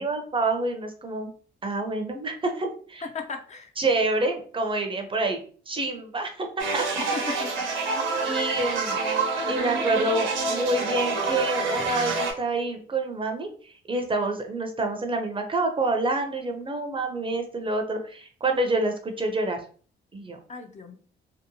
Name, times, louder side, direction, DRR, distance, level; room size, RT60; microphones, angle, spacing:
voice 1, 0.0-1.3 1.6-3.0 3.8-5.4 5.7-6.5 6.7-6.8 7.2-7.4 8.2-9.0 9.5-13.5 13.9-19.6 20.1-20.4, right 2 dB, 25° right, 4 dB, 0.5 m, -27 dB
voice 2, 3.0-3.7 7.1-7.7 20.5-21.0, left 4 dB, 35° left, 4 dB, 0.4 m, -36 dB
sound 1, 6.6-12.3, right 3 dB, 75° right, 0.8 m, -27 dB
2.8 x 2.0 x 2.6 m, 0.43 s
cardioid pair, 90°, 20 cm